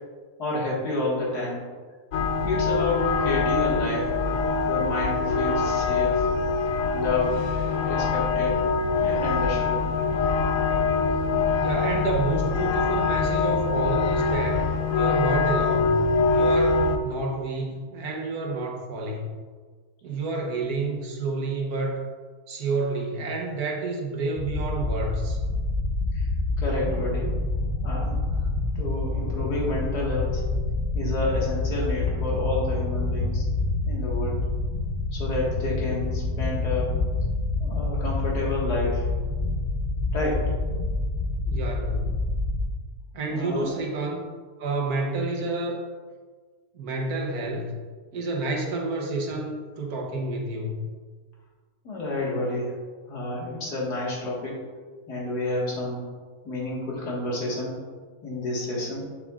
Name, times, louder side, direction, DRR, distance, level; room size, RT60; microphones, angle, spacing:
voice 1, 0.4-1.7 2.4-4.1 4.7-6.3 6.9-7.4 7.9-8.6 9.0-9.8 26.1-26.3 26.6-27.3 27.8-28.5 28.8-30.4 30.9-33.4 33.9-34.5 35.1-36.9 37.6-39.1 40.1-40.5 43.3-43.7 51.8-52.8 53.1-54.6 55.1-56.1 56.4-57.8 58.2-59.1, left 2 dB, 85° left, -4 dB, 2.4 m, -29 dB
sound 1, 2.1-17.0, left 4 dB, 65° left, 0.9 m, -24 dB
voice 2, 11.5-14.7 14.9-19.3 20.0-22.0 22.5-25.4 41.4-42.2 43.1-44.3 44.6-45.8 46.7-47.8 48.1-50.8, right 3 dB, 70° right, 1 dB, 1.5 m, -29 dB
sound 2, 24.4-42.6, left 2 dB, 40° left, 1.2 m, -27 dB
7.8 x 7.1 x 2.4 m, 1.5 s
omnidirectional pair, 1.6 m